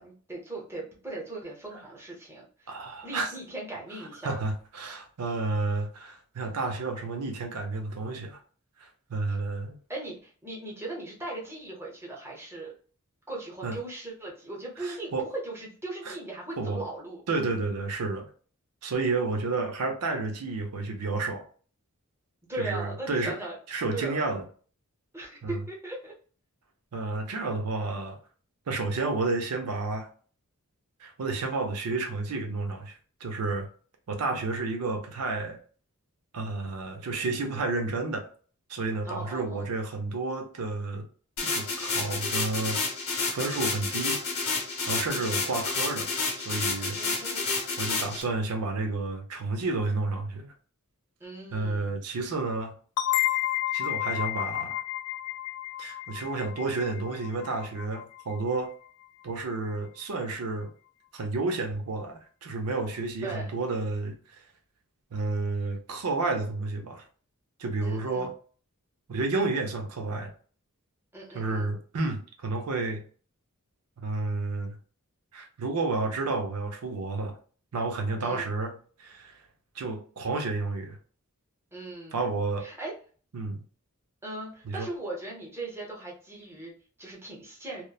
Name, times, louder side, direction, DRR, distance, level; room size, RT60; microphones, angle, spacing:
voice 1, 0.0-4.4 9.9-12.7 13.3-17.2 22.5-23.6 23.9-24.2 25.1-26.1 39.0-39.7 45.1-45.5 47.0-47.5 51.2-52.0 63.2-63.5 67.8-68.3 71.1-71.7 78.2-78.5 81.7-82.2 82.6-82.9 84.2-87.8, right 2 dB, 10° right, 0.8 m, -39 dB
voice 2, 2.7-3.3 4.2-8.4 8.8-9.8 13.6-13.8 14.8-15.3 16.1-16.2 16.6-16.9 17.3-18.3 18.8-21.4 22.6-23.4 23.7-24.4 25.4-25.6 26.9-28.2 28.7-30.1 31.0-33.7 34.1-35.6 36.3-38.3 38.7-41.1 41.4-42.8 43.3-44.2 44.9-46.1 46.4-47.0 47.8-50.5 51.5-52.7 53.7-54.8 55.8-58.7 59.2-60.7 61.1-64.4 65.1-67.0 67.6-68.3 69.1-70.3 71.3-73.0 74.0-74.8 75.3-77.4 77.7-78.7 79.0-79.4 79.7-81.0 82.1-82.7 83.3-83.6 84.6-84.9, right 3 dB, 90° right, 0.6 m, -31 dB
sound 1, 41.4-48.2, left 4 dB, 65° left, 0.9 m, -30 dB
sound 2, 53.0-58.4, left 14 dB, 90° left, 0.3 m, -31 dB
3.0 x 2.0 x 2.3 m
head